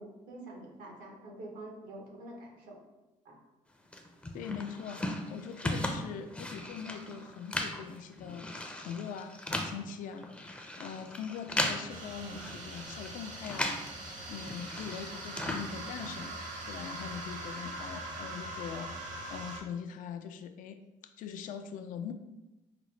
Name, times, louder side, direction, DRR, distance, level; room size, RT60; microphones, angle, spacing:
voice 1, 0.0-2.8 3.2-3.4, right 1 dB, 80° right, 0 dB, 1.0 m, -46 dB
sound 1, 3.9-14.0 14.2-16.3, left 1 dB, 10° left, 0.5 m, -37 dB
voice 2, 4.3-20.8 21.0-22.1, left 7 dB, 70° left, 8 dB, 0.4 m, -42 dB
sound 2, 11.9-19.6, right 2 dB, 60° right, 0.9 m, -42 dB
4.8 x 2.0 x 3.1 m, 1.0 s
cardioid pair, 90°, 14 cm